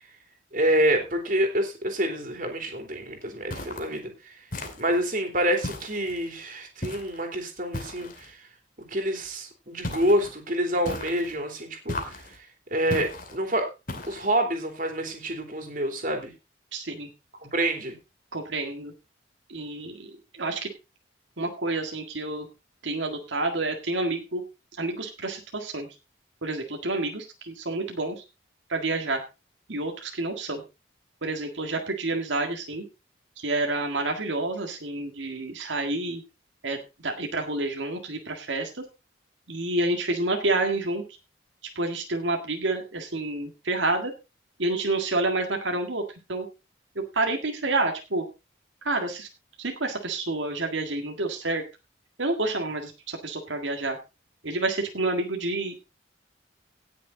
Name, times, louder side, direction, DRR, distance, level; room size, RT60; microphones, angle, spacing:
voice 1, 0.5-4.3 4.8-8.4 8.9-12.1 12.7-13.7 14.1-16.3 17.4-17.9, right 1 dB, 45° right, 4 dB, 3.2 m, -27 dB
sound 1, 3.5-4.0 4.5-5.1 5.6-6.3 6.8-7.2 7.7-8.3 9.8-10.3 10.8-11.4 11.9-12.4 12.9-13.4 13.9-14.4, left 2 dB, 45° left, 2.6 m, -36 dB
voice 2, 16.7-17.1 18.3-18.9 19.5-20.7 21.4-22.5 22.8-24.4 24.8-25.9 26.4-28.2 28.7-29.2 29.7-30.6 31.2-32.8 33.4-36.2 36.6-36.8 37.0-38.8 39.5-41.0 41.8-44.1 44.6-46.0 46.3-46.5 47.0-48.3 48.8-49.3 49.6-51.6 52.2-54.0 54.4-55.7, right 2 dB, 80° right, 3 dB, 1.8 m, -29 dB
17.5 x 6.6 x 3.9 m, 0.28 s
head